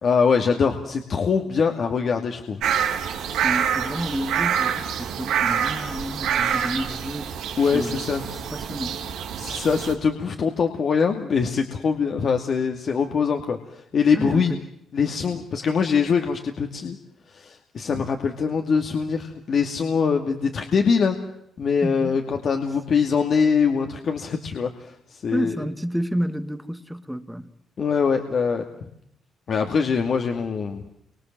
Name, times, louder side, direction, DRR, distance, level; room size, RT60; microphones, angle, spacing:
voice 1, 0.0-2.6 7.6-8.3 9.4-14.5 14.9-17.0 17.3-21.2 21.6-25.6 27.8-28.9 29.5-30.9, left 5 dB, 55° left, 2.5 m, -23 dB
sound 1, 2.6-9.9, right 8 dB, 85° right, 3.8 m, -26 dB
voice 2, 3.4-7.3 7.7-8.0 8.5-9.0 14.1-14.6 21.8-22.2 25.3-27.5, equal, 5° right, 2.0 m, -30 dB
30.0 x 25.0 x 7.7 m
cardioid pair, 90°, 0 cm